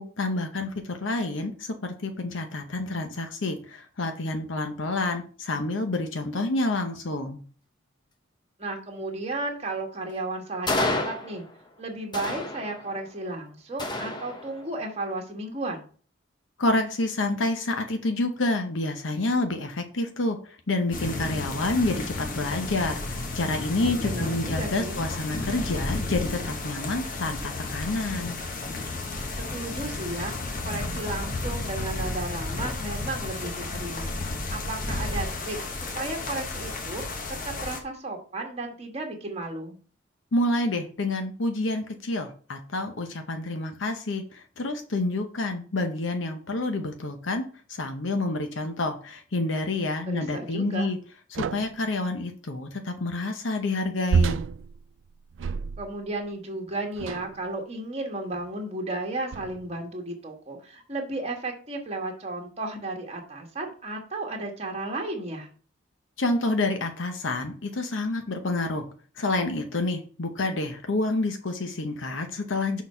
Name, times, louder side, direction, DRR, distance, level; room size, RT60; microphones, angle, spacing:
voice 1, 0.0-7.4 16.6-20.4 20.7-28.4 40.3-47.4 47.7-51.0 51.3-54.4 66.2-68.8 69.2-72.8, left 2 dB, 70° left, 5 dB, 0.8 m, -28 dB
voice 2, 8.6-11.4 11.8-15.8 24.0-25.0 29.5-30.3 30.6-34.1 34.5-37.2 37.4-39.8 50.1-50.9 55.8-65.5, right 2 dB, 30° right, 2 dB, 1.5 m, -34 dB
sound 1, 10.7-11.7 12.1-13.1 13.8-14.8, left 2 dB, 20° left, 0.8 m, -30 dB
sound 2, 20.9-37.8, left 2 dB, 45° left, 1.1 m, -32 dB
sound 3, 51.3-51.9 54.1-56.1 57.0-57.4 58.3-58.5 59.3-59.7, right 5 dB, 70° right, 0.3 m, -28 dB
6.2 x 4.1 x 5.5 m, 0.41 s
head